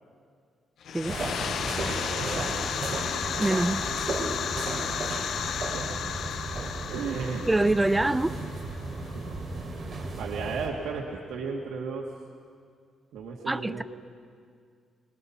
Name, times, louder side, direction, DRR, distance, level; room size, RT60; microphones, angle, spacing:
sound 1, 0.8-9.4, left 8 dB, 55° left, 0.6 m, -33 dB
sound 2, 1.1-10.7, right 2 dB, 30° right, 3.3 m, -34 dB
voice 1, 1.8-2.7 3.1-3.2 5.6-5.8 6.9-7.5 10.2-12.1 13.1-13.8, right 5 dB, 80° right, -3 dB, 2.1 m, -34 dB
voice 2, 3.4-3.8 7.5-8.3 13.5-13.8, right 2 dB, 10° right, 14 dB, 0.5 m, -24 dB
29.0 x 21.0 x 5.9 m, 2.2 s
cardioid pair, 165°, 0 cm